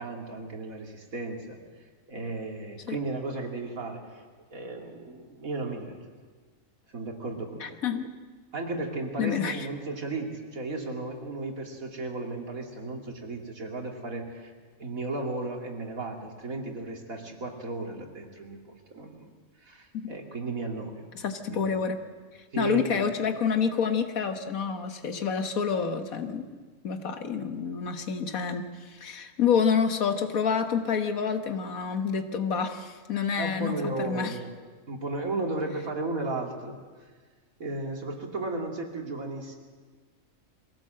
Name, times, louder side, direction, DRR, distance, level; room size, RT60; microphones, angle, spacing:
voice 1, 0.0-1.6 2.1-4.2 4.5-6.0 6.9-7.8 8.5-14.5 14.8-18.6 18.9-19.3 19.6-21.1 21.5-21.7 22.5-23.1 33.4-34.5 34.9-37.1 37.6-39.5, right 2 dB, 80° right, 2 dB, 3.0 m, -34 dB
voice 2, 7.6-8.1 9.2-9.7 19.9-20.1 21.2-22.0 22.6-26.5 26.8-34.4, left 6 dB, 85° left, 7 dB, 1.8 m, -28 dB
22.5 x 16.5 x 7.7 m, 1.5 s
omnidirectional pair, 1.4 m